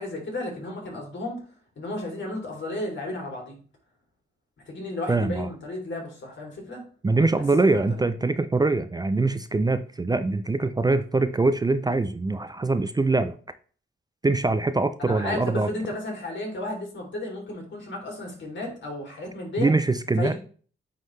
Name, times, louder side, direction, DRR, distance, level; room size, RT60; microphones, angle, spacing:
voice 1, 0.0-1.4 1.8-3.6 4.7-6.8 8.0-8.1 15.0-19.7 20.2-20.3, left 2 dB, 65° left, -1 dB, 3.1 m, -33 dB
voice 2, 5.1-5.5 7.0-13.3 14.2-15.7 19.6-20.3, right 3 dB, 20° right, 11 dB, 0.4 m, -23 dB
9.2 x 3.8 x 3.2 m, 0.41 s
cardioid pair, 80°, 20 cm